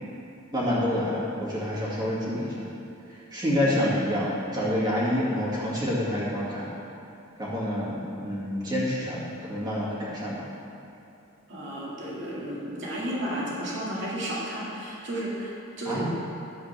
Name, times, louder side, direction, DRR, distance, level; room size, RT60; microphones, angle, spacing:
voice 1, 0.5-2.7 3.1-6.7 7.4-10.5 15.9-16.0, left 1 dB, 20° right, -8 dB, 2.2 m, -28 dB
voice 2, 11.5-16.1, right 1 dB, 60° right, -6 dB, 2.2 m, -33 dB
12.0 x 7.9 x 3.4 m, 2.8 s
head